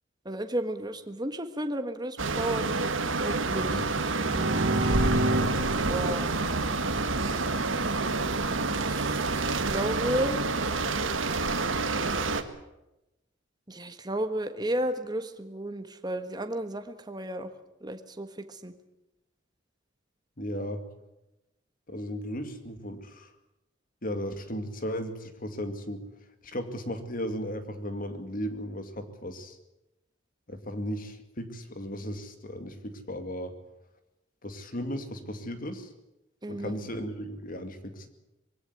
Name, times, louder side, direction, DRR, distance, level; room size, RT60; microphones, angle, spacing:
voice 1, 0.2-2.7 3.2-3.8 5.9-6.3 8.8-10.5 13.7-17.5 17.8-18.7 36.4-36.9, right 1 dB, 20° right, 8 dB, 1.4 m, -33 dB
sound 1, 2.2-12.4, right 3 dB, 80° right, 1.6 m, -28 dB
sound 2, 4.1-7.8, right 1 dB, 55° right, 2.6 m, -30 dB
voice 2, 20.4-20.8 21.9-23.3 24.0-26.1 26.4-29.6 30.5-33.5 34.4-35.9 36.5-38.1, equal, 45° left, 8 dB, 2.3 m, -36 dB
22.0 x 16.5 x 9.5 m, 0.94 s
head